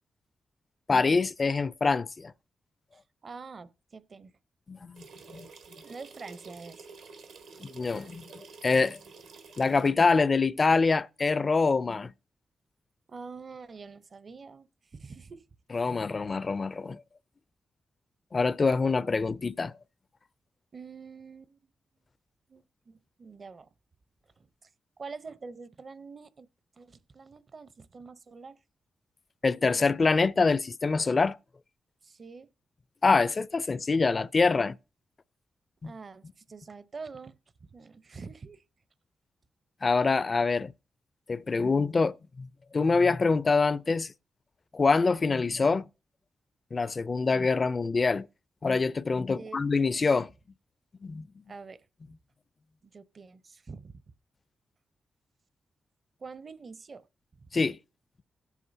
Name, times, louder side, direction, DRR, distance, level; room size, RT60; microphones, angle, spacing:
voice 1, 0.9-2.3 4.7-5.5 7.6-9.0 9.6-12.1 15.7-17.0 18.3-19.8 29.4-31.4 33.0-34.8 35.8-35.9 39.8-40.7 41.3-44.1 44.7-45.9 46.7-48.3 48.6-50.3 51.0-51.3 57.5-57.8, left 4 dB, 45° left, 0.4 m, -25 dB
voice 2, 2.9-4.4 5.8-6.9 7.5-7.7 13.1-15.4 20.7-21.6 22.5-23.7 24.4-24.7 25.0-26.5 26.8-28.6 32.0-32.5 35.8-38.6 49.3-49.6 51.5-51.9 52.8-54.0 56.2-57.1 57.4-57.5, right 4 dB, 55° right, 0.7 m, -46 dB
sound 1, 4.9-9.9, right 4 dB, 85° right, 1.4 m, -49 dB
19.0 x 8.2 x 2.7 m
supercardioid pair, 50°, 0 cm